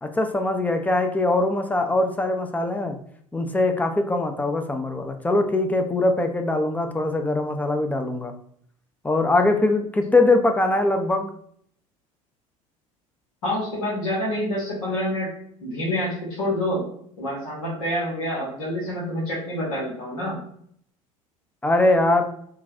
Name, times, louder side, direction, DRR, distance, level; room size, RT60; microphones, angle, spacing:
voice 1, 0.0-3.0 3.3-8.3 9.0-11.3 21.6-22.3, left 2 dB, 10° left, 5 dB, 0.5 m, -22 dB
voice 2, 13.4-15.3 15.6-16.8 17.2-20.4, left 1 dB, 75° left, -5 dB, 1.1 m, -27 dB
3.8 x 2.2 x 2.7 m, 0.65 s
hypercardioid pair, 70°, 18 cm